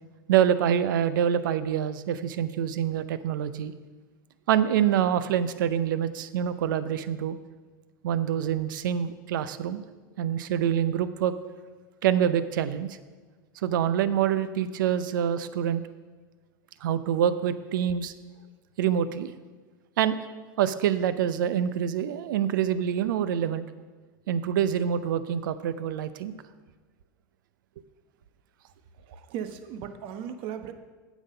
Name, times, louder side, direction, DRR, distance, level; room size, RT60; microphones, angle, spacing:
voice 1, 0.3-3.7 4.5-7.4 8.0-9.8 10.2-11.3 12.0-13.0 13.6-15.8 16.8-18.1 18.8-19.3 20.0-20.2 20.6-23.6 24.3-26.3, right 9 dB, 75° right, 13 dB, 0.6 m, -26 dB
voice 2, 29.3-30.7, right 9 dB, 55° right, 9 dB, 1.0 m, -36 dB
8.9 x 7.2 x 5.5 m, 1.4 s
hypercardioid pair, 95°, 11 cm